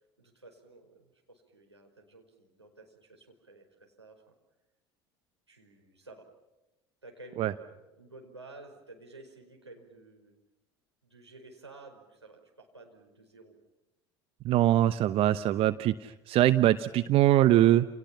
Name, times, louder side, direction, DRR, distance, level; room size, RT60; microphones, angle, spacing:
voice 1, 0.2-4.3 5.5-6.3 7.0-10.3 11.0-13.6, right 2 dB, 85° right, 0 dB, 5.2 m, -52 dB
voice 2, 14.4-17.9, right 13 dB, 45° right, 13 dB, 0.9 m, -23 dB
29.5 x 29.5 x 5.8 m, 1.0 s
figure-of-eight pair, 65°, 14 cm